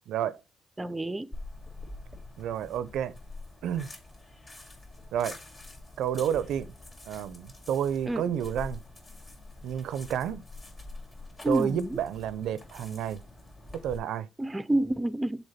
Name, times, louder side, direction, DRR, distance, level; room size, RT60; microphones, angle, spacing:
voice 1, 0.1-0.4 2.4-3.1 3.6-3.9 5.1-5.4 6.0-6.7 7.1-8.8 9.6-10.4 11.5-13.2 13.7-14.3, right 9 dB, 80° right, 0.5 m, -30 dB
voice 2, 0.8-1.3 8.1-8.2 11.4-11.9 14.4-15.5, right 1 dB, 15° right, 0.5 m, -28 dB
sound 1, 1.3-14.0, left 2 dB, 30° left, 2.5 m, -46 dB
6.6 x 4.3 x 4.1 m
cardioid pair, 90°, 0 cm